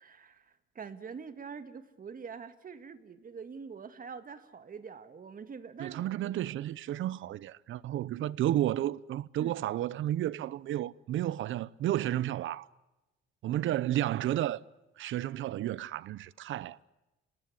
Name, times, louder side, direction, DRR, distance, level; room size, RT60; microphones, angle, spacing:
voice 1, 0.0-6.1 9.4-9.5, right 6 dB, 45° right, 2.0 m, -45 dB
voice 2, 5.8-12.7 13.4-14.6 15.0-16.9, right 13 dB, 80° right, 0.8 m, -32 dB
27.0 x 19.0 x 9.9 m
cardioid pair, 90°, 20 cm